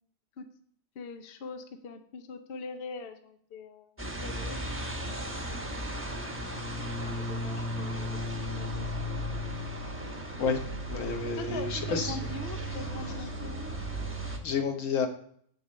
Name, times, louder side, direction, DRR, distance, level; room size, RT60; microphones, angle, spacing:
voice 1, 1.0-4.6 7.0-8.3 8.5-8.9 10.9-11.1 11.4-13.8, left 4 dB, 55° left, 7 dB, 0.8 m, -43 dB
sound 1, 4.0-14.4, equal, 10° right, 1.0 m, -35 dB
voice 2, 10.9-12.2 14.4-15.1, left 5 dB, 70° left, 5 dB, 1.4 m, -30 dB
6.8 x 6.7 x 4.0 m, 0.62 s
omnidirectional pair, 1.4 m